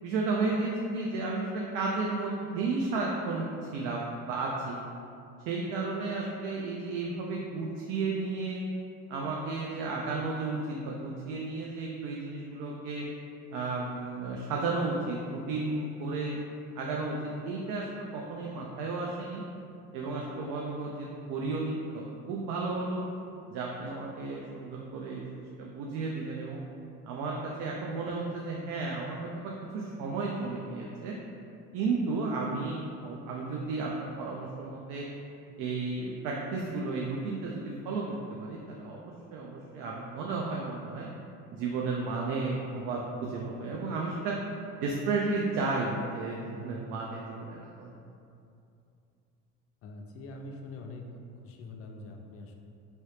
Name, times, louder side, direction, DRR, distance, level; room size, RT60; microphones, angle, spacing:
voice 1, 0.0-3.5 3.7-4.8 5.5-8.6 9.1-13.0 13.5-16.4 16.8-19.4 19.9-23.0 23.5-26.6 27.0-31.1 31.7-35.0 35.6-38.0 38.3-41.1 41.5-44.4 44.8-47.9, right 3 dB, 75° right, -2 dB, 0.5 m, -33 dB
voice 2, 49.8-52.6, left 2 dB, 45° left, 2 dB, 0.5 m, -44 dB
3.0 x 2.8 x 3.2 m, 2.6 s
supercardioid pair, 105°, 32 cm